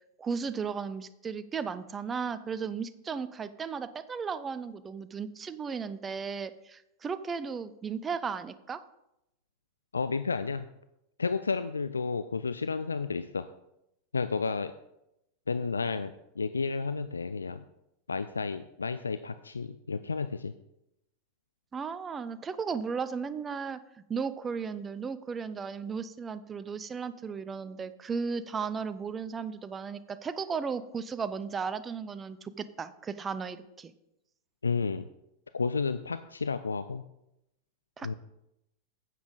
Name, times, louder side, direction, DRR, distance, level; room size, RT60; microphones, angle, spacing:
voice 1, 0.2-8.8 21.7-23.8 24.1-33.9 38.0-38.1, right 5 dB, 20° right, 13 dB, 0.6 m, -35 dB
voice 2, 9.9-10.7 11.2-13.4 14.1-14.7 15.5-17.6 18.1-20.5 34.6-35.1 35.5-37.0 38.0-38.1, left 4 dB, 75° left, 11 dB, 0.4 m, -31 dB
9.4 x 8.3 x 3.8 m, 0.85 s
figure-of-eight pair, 90°, 0 cm